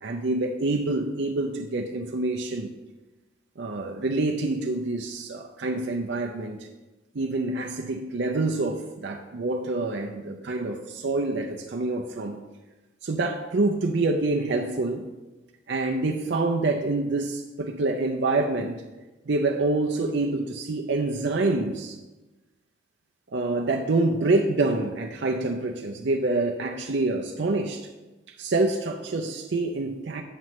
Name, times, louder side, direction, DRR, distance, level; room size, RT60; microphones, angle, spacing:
voice 1, 0.0-2.7 3.6-6.7 7.1-12.4 13.0-15.1 15.7-18.8 19.3-22.0 23.3-27.9 28.3-30.2, right 2 dB, 60° right, 2 dB, 0.5 m, -26 dB
8.9 x 7.5 x 3.1 m, 1.1 s
head